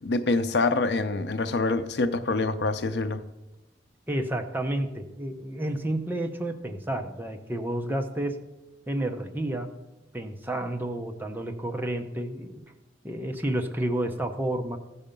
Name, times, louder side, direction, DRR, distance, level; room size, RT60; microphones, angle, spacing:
voice 1, 0.0-3.2, left 3 dB, 75° left, 11 dB, 0.6 m, -26 dB
voice 2, 4.1-8.4 8.9-9.7 10.1-12.6 13.0-14.8, right 1 dB, 10° right, 5 dB, 0.7 m, -30 dB
15.0 x 5.7 x 5.2 m, 1.0 s
head